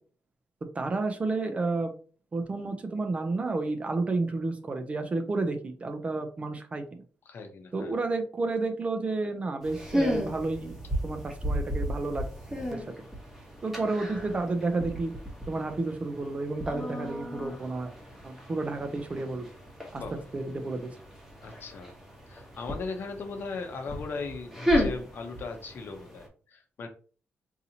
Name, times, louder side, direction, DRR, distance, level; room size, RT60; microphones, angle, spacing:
voice 1, 0.7-1.9 2.3-7.0 7.7-12.2 12.7-12.8 13.6-15.1 15.5-17.9 18.2-19.5 19.9-20.0 20.3-20.9, right 3 dB, 30° right, 7 dB, 0.5 m, -31 dB
voice 2, 7.3-7.9 20.0-20.2 21.4-21.9 22.3-26.9, left 4 dB, 50° left, 5 dB, 0.8 m, -38 dB
sound 1, 9.6-26.3, equal, 5° right, 1.0 m, -34 dB
4.0 x 2.7 x 2.8 m, 0.40 s
wide cardioid pair, 150°, 5 cm